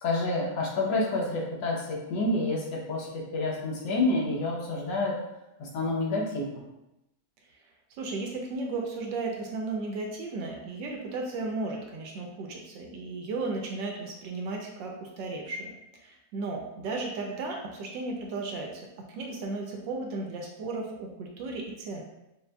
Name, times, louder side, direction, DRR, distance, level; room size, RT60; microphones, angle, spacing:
voice 1, 0.0-5.2 5.6-6.6, left 2 dB, 70° left, -3 dB, 1.5 m, -28 dB
voice 2, 8.0-15.7 16.0-22.0, right 3 dB, 75° right, 0 dB, 1.2 m, -35 dB
6.4 x 2.6 x 2.2 m, 0.90 s
omnidirectional pair, 2.1 m